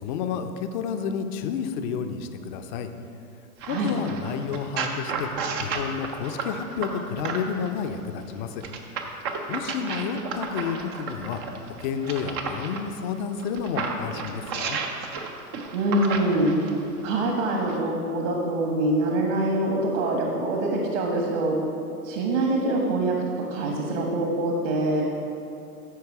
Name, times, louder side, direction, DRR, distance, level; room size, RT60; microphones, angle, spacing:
voice 1, 0.0-2.9 3.7-5.3 5.6-8.6 9.5-11.4 11.8-14.8, left 6 dB, 30° left, 7 dB, 0.6 m, -30 dB
sound 1, 3.6-7.7 8.6-12.8 13.4-16.8 17.6-17.7, right 5 dB, 20° right, 0.4 m, -32 dB
voice 2, 15.7-16.5 17.0-21.6 22.0-23.1 23.5-25.0, right 1 dB, 55° right, 0 dB, 1.5 m, -24 dB
13.0 x 4.7 x 4.7 m, 2.7 s
figure-of-eight pair, 105°, 45 cm